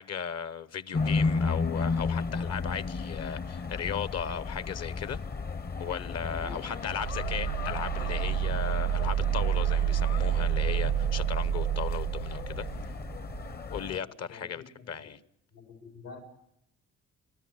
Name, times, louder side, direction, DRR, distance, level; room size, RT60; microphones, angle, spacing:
voice 1, 0.0-5.2 5.8-12.7 13.7-15.2, left 7 dB, 55° left, 1.0 m, -36 dB
sound 1, 0.9-14.0, left 4 dB, 30° left, 0.7 m, -34 dB
voice 2, 6.4-6.8 13.9-15.1 15.5-16.2, left 4 dB, 85° left, 5.1 m, -48 dB
sound 2, 6.9-13.5, right 11 dB, 75° right, 0.7 m, -29 dB
30.0 x 13.5 x 7.8 m
cardioid pair, 90°, 30 cm